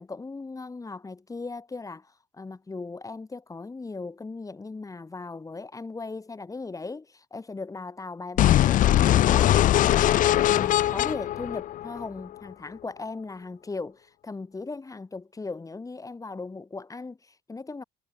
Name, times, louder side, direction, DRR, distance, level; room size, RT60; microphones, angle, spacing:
voice 1, 0.0-17.8, left 3 dB, 20° left, 4.9 m, -38 dB
sound 1, 8.4-12.3, left 13 dB, 50° left, 0.4 m, -21 dB
cardioid pair, 110°, 17 cm